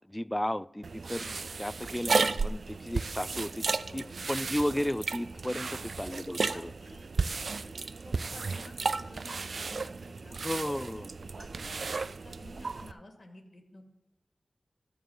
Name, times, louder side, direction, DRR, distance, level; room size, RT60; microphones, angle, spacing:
voice 1, 0.1-3.6 3.9-5.7 6.0-6.7 10.4-11.1, left 1 dB, 15° left, 19 dB, 0.3 m, -34 dB
sound 1, 0.8-12.9, right 4 dB, 80° right, 0.3 m, -34 dB
voice 2, 3.9-4.2 5.6-5.8 6.3-7.1 7.5-10.4 10.9-13.8, left 1 dB, 50° left, 3 dB, 2.3 m, -52 dB
13.5 x 4.7 x 7.2 m, 0.96 s
cardioid pair, 50°, 0 cm